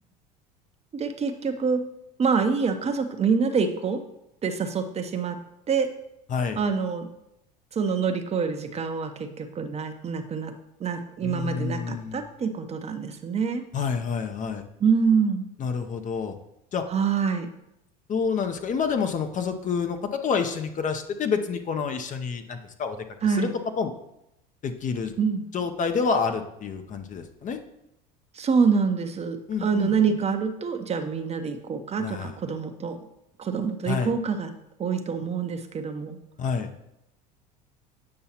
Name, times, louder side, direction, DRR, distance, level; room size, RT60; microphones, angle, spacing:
voice 1, 0.9-1.8 2.2-4.0 4.4-5.4 5.7-5.9 6.6-7.1 7.7-10.5 10.8-13.6 14.8-15.5 16.9-17.5 23.2-23.5 25.2-25.4 28.3-33.1 33.4-34.5 34.8-36.2, right 5 dB, 30° right, 7 dB, 0.7 m, -26 dB
voice 2, 11.2-12.3 13.7-14.6 15.6-16.3 16.7-16.8 18.1-23.0 23.4-23.5 23.8-23.9 24.6-25.1 25.5-27.6 29.5-29.9 32.0-32.4 33.9-34.1 36.4-36.7, left 5 dB, 35° left, 7 dB, 0.7 m, -28 dB
8.6 x 5.5 x 2.9 m, 0.83 s
hypercardioid pair, 80°, 21 cm